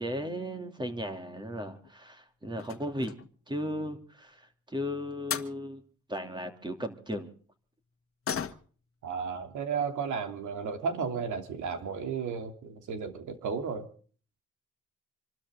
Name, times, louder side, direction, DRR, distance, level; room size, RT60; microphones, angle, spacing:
voice 1, 0.0-3.1 3.5-5.8 6.1-7.3, equal, 15° right, 6 dB, 2.8 m, -36 dB
sound 1, 1.6-2.0 2.5-3.4 4.9-5.0 5.3-5.6 8.2-8.9 9.3-9.4 9.8-9.9 10.7-10.8 11.1-11.2 11.7-12.0 12.3-12.4 12.7-12.8, left 8 dB, 45° left, 1.6 m, -37 dB
voice 2, 9.0-13.9, right 6 dB, 75° right, 6 dB, 3.0 m, -33 dB
27.0 x 13.0 x 3.7 m, 0.42 s
cardioid pair, 90°, 30 cm